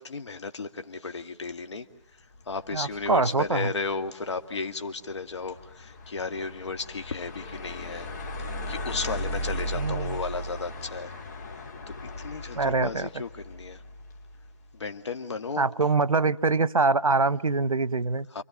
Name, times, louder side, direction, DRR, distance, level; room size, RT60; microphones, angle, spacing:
voice 1, 0.0-1.9 2.5-8.1 8.7-11.1 12.2-13.8 14.7-15.7 18.3-18.4, left 4 dB, 55° left, 7 dB, 2.2 m, -34 dB
sound 1, 2.3-14.5, equal, 30° left, 3.4 m, -37 dB
voice 2, 2.7-3.7 9.7-10.2 12.5-13.1 15.6-18.3, right 3 dB, 90° right, 17 dB, 1.0 m, -24 dB
29.5 x 24.0 x 7.3 m, 0.71 s
figure-of-eight pair, 165°, 17 cm